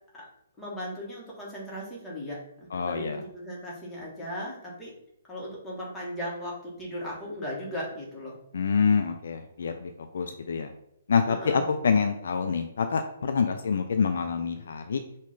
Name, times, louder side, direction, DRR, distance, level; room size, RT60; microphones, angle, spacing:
voice 1, 0.6-4.9 5.3-8.4 11.3-11.7, equal, 10° left, -5 dB, 1.5 m, -37 dB
voice 2, 2.7-3.2 8.5-10.7 11.1-15.0, left 5 dB, 55° left, 6 dB, 0.4 m, -26 dB
5.1 x 2.6 x 3.5 m, 0.76 s
figure-of-eight pair, 125°, 0 cm